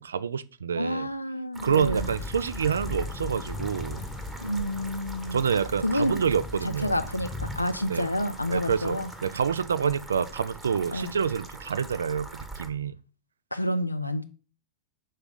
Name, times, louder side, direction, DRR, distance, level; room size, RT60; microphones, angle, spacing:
voice 1, 0.0-1.1 1.6-4.0 5.3-7.0 7.9-8.1 8.5-12.9, right 7 dB, 70° right, 0.3 m, -27 dB
voice 2, 0.7-2.1 4.4-5.4 5.8-6.2 6.6-9.1 10.9-11.2 13.5-14.2, left 1 dB, 85° left, 0.5 m, -29 dB
sound 1, 1.5-12.7, right 2 dB, 10° right, 1.0 m, -43 dB
sound 2, 1.9-9.4, left 2 dB, 30° left, 1.0 m, -39 dB
5.4 x 3.4 x 5.6 m
figure-of-eight pair, 90°, 0 cm